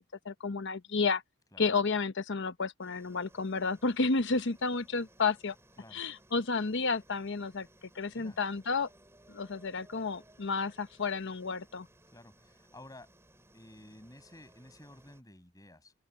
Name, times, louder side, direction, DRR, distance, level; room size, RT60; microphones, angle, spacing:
voice 1, 0.2-1.2 1.6-5.5 5.9-7.7 7.9-8.9 9.3-11.9, left 4 dB, 55° left, 0.9 m, -31 dB
sound 1, 2.8-15.2, right 1 dB, 10° right, 7.8 m, -61 dB
voice 2, 12.1-13.1 13.5-15.9, left 1 dB, 15° left, 6.6 m, -53 dB
open air
head